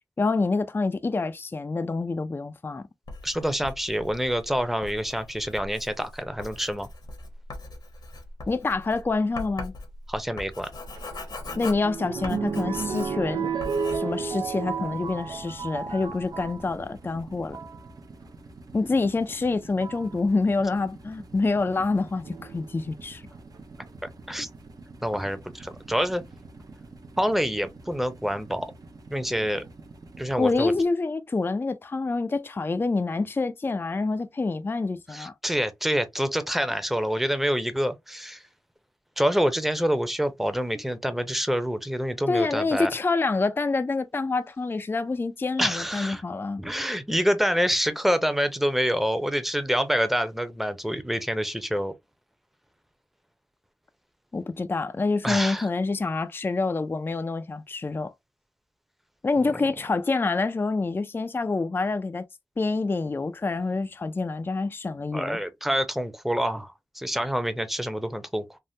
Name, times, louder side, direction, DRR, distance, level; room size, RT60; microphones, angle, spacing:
voice 1, 0.2-2.9 8.5-9.7 11.6-13.5 13.9-17.6 18.7-23.2 30.4-35.3 42.3-46.6 54.3-58.1 59.2-62.3 62.6-65.4, left 3 dB, 30° left, 0.3 m, -27 dB
Writing, 3.1-13.3 13.6-14.0, left 2 dB, 75° left, 0.9 m, -40 dB
voice 2, 3.2-6.9 10.1-10.7 24.0-24.5 25.0-26.2 27.2-28.7 29.1-29.6 30.2-30.7 35.1-38.4 39.2-42.9 45.6-46.2 46.6-51.9 55.2-55.7 59.4-59.6 65.1-68.6, equal, 5° right, 0.7 m, -27 dB
sound 1, 11.0-16.6 17.3-17.8 19.0-19.1 19.8-20.1 22.2-22.9 23.5-23.6 23.9-24.0, right 5 dB, 85° right, 0.5 m, -32 dB
sound 2, 14.0-30.9, right 3 dB, 60° right, 0.7 m, -47 dB
3.4 x 2.1 x 2.6 m
cardioid pair, 60°, 7 cm